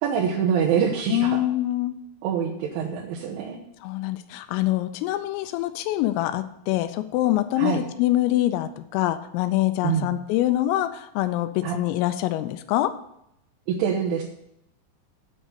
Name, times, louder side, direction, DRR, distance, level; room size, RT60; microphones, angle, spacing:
voice 1, 0.0-1.4 2.2-3.7 7.6-7.8 9.8-10.1 11.6-11.7 13.7-14.2, right 7 dB, 75° right, -3 dB, 3.5 m, -25 dB
voice 2, 1.1-1.9 3.8-12.9, left 15 dB, 85° left, 10 dB, 3.3 m, -25 dB
9.1 x 6.3 x 8.1 m, 0.78 s
omnidirectional pair, 5.8 m